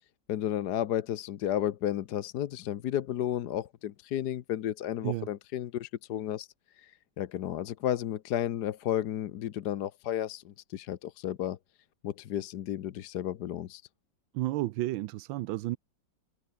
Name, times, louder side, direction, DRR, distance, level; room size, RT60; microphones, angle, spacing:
voice 1, 0.3-6.5 6.7-11.6 12.0-13.8, left 11 dB, 65° left, 1.3 m, -33 dB
voice 2, 14.3-15.8, right 16 dB, 85° right, 1.4 m, -32 dB
omnidirectional pair, 2.1 m